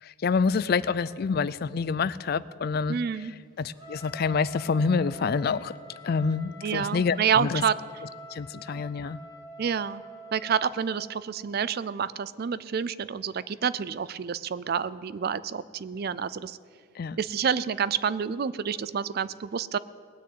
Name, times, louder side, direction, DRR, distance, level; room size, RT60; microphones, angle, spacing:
voice 1, 0.0-3.0 3.6-5.7 6.0-7.6 8.3-9.2 17.0-17.2, left 5 dB, 45° left, 18 dB, 0.3 m, -27 dB
voice 2, 2.9-3.3 6.6-7.8 8.7-8.8 9.6-10.0 10.3-16.6 17.2-19.8, right 7 dB, 45° right, 17 dB, 0.4 m, -28 dB
Trumpet, 3.7-11.1, right 1 dB, 20° right, 1.9 m, -46 dB
19.5 x 6.6 x 9.2 m, 2.1 s
head